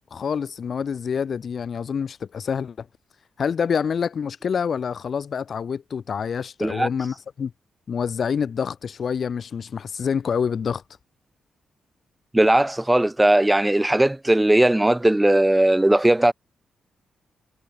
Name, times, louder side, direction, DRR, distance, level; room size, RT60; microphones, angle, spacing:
voice 1, 0.1-2.9 3.4-7.5 7.9-10.8, left 6 dB, 50° left, 2.1 m, -27 dB
voice 2, 12.3-16.3, right 1 dB, 10° right, 2.1 m, -18 dB
cardioid pair, 135°, 0 cm